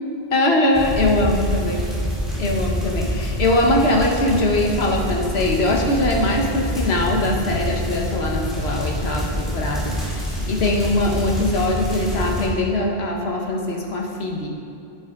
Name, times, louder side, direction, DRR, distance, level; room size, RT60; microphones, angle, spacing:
voice 1, 0.3-1.8 2.4-14.5, left 1 dB, 80° left, 0 dB, 1.4 m, -21 dB
sound 1, 0.7-12.5, equal, ahead, 2.3 m, -26 dB
9.6 x 9.3 x 3.8 m, 2.7 s
omnidirectional pair, 1.1 m